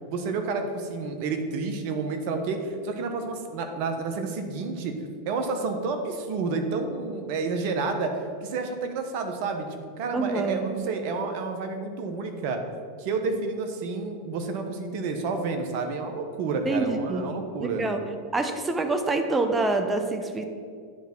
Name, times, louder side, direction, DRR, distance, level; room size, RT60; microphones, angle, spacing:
voice 1, 0.1-4.9 5.2-12.6 13.0-17.8, right 4 dB, 60° right, 5 dB, 1.1 m, -30 dB
voice 2, 10.1-10.8 16.7-17.2 17.6-18.0 18.3-20.4, right 3 dB, 20° right, 6 dB, 0.7 m, -26 dB
10.0 x 3.6 x 5.8 m, 2.2 s
hypercardioid pair, 100°, 0 cm